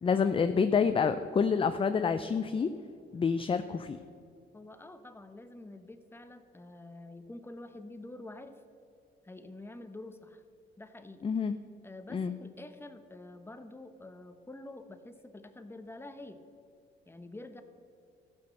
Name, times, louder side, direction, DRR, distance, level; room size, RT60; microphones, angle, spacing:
voice 1, 0.0-2.7 3.1-4.0 11.2-11.5 12.1-12.3, left 6 dB, 25° left, 10 dB, 0.5 m, -28 dB
voice 2, 4.5-8.6 9.2-10.4 10.8-11.3 11.8-16.4 17.1-17.6, left 2 dB, 10° left, 8 dB, 0.9 m, -47 dB
14.0 x 6.0 x 6.5 m, 2.4 s
cardioid pair, 90°, 20 cm